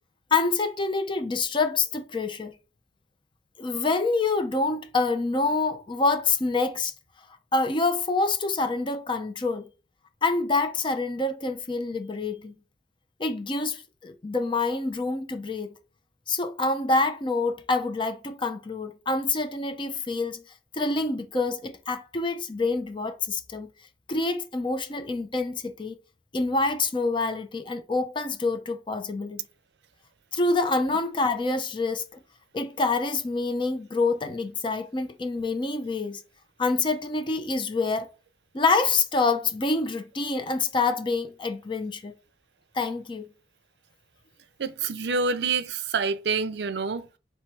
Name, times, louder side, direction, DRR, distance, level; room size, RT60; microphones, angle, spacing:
voice 1, 0.3-2.5 3.6-6.9 7.5-9.7 10.2-12.5 13.2-15.7 16.3-20.4 20.7-23.7 24.1-26.0 26.3-29.4 30.3-32.2 32.5-36.2 36.6-38.1 38.5-42.1 42.7-43.3, left 3 dB, 30° left, 0.6 m, -26 dB
voice 2, 44.6-47.2, right 4 dB, 70° right, 0.5 m, -27 dB
3.1 x 3.0 x 4.5 m
head